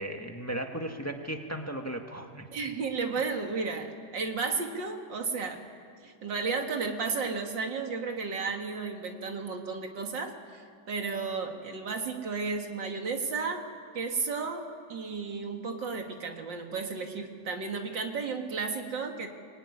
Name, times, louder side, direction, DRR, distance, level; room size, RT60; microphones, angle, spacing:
voice 1, 0.0-2.5, right 1 dB, 10° left, 3 dB, 1.5 m, -36 dB
voice 2, 2.5-5.6 6.0-13.7 13.9-19.3, right 4 dB, 90° right, 4 dB, 2.7 m, -33 dB
23.0 x 23.0 x 9.9 m, 2.2 s
omnidirectional pair, 1.9 m